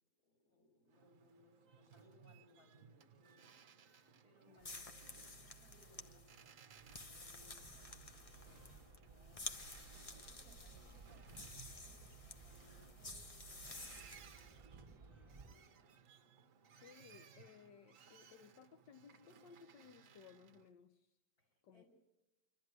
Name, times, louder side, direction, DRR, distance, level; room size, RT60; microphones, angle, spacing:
voice 1, 0.2-3.6 4.2-15.7 21.4-21.9, left 1 dB, 55° left, -2 dB, 7.3 m, -69 dB
Boat Water vehicle, 0.9-20.7, right 6 dB, 55° right, 1.2 m, -64 dB
voice 2, 4.5-4.8 16.8-21.2 21.6-21.8, left 6 dB, 85° left, 8 dB, 1.6 m, -61 dB
sound 1, 4.6-14.5, left 2 dB, 30° left, 0.7 m, -52 dB
sound 2, 7.2-15.6, right 4 dB, 20° right, 1.5 m, -61 dB
25.5 x 13.0 x 9.5 m, 1.0 s
omnidirectional pair, 1.9 m